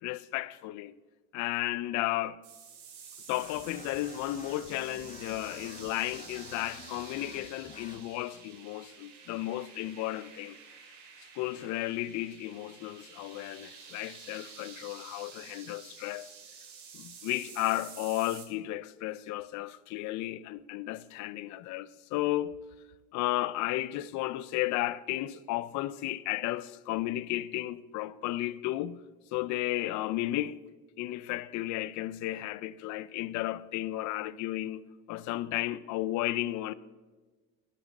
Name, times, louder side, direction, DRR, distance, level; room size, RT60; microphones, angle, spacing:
voice 1, 0.0-0.9 1.3-2.4 3.3-10.6 11.4-16.3 16.9-22.6 23.1-29.0 29.3-30.6 31.0-34.8 35.1-36.7, left 15 dB, 65° left, 0.6 m, -33 dB
sound 1, 2.4-18.5, right 6 dB, 70° right, 2.7 m, -50 dB
sound 2, 3.3-8.5, left 4 dB, 25° left, 1.2 m, -50 dB
11.5 x 6.7 x 7.5 m
cardioid pair, 110°, 31 cm